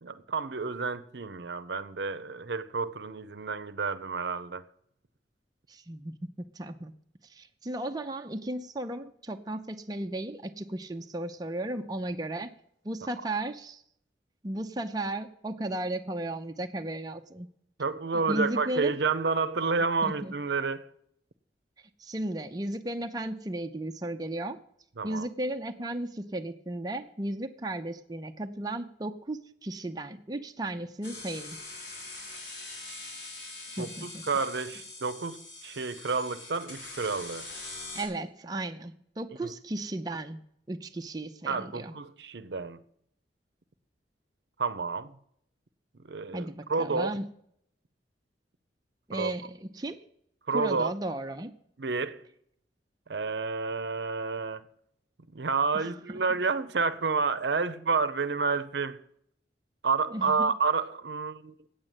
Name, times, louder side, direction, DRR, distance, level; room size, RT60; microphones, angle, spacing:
voice 1, 0.0-4.6 17.8-20.9 25.0-25.3 33.8-37.5 39.4-39.5 41.5-42.8 44.6-45.2 46.0-47.1 49.1-49.3 50.5-50.9 51.8-52.3 53.1-54.6 55.3-59.0 59.8-61.7, right 4 dB, 70° right, 0.7 m, -30 dB
voice 2, 5.7-6.9 7.3-12.5 12.8-13.8 14.4-17.5 18.1-18.9 20.0-20.3 22.0-24.6 25.0-31.6 33.8-34.2 37.9-40.4 40.7-41.9 46.3-47.2 49.1-50.0 50.5-51.5 55.7-56.2 60.1-60.5, right 1 dB, 20° right, 0.6 m, -35 dB
sound 1, 31.0-38.1, left 2 dB, 85° left, 3.9 m, -43 dB
8.7 x 7.7 x 9.0 m
head